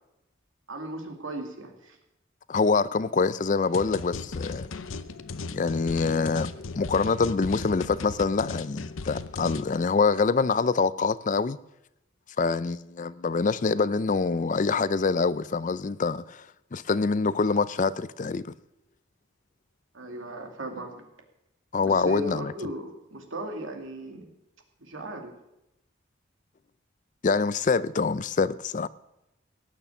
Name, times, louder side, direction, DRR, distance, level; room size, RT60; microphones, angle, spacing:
voice 1, 0.7-2.0 19.9-21.1 21.8-24.3 24.8-25.3, right 1 dB, 80° right, 2.4 m, -37 dB
voice 2, 2.5-4.7 5.5-6.5 6.8-11.6 12.4-18.5 21.7-22.5 27.2-28.9, left 4 dB, 40° left, 0.4 m, -25 dB
sound 1, 3.7-9.7, left 4 dB, 85° left, 0.7 m, -37 dB
18.0 x 6.8 x 8.4 m
head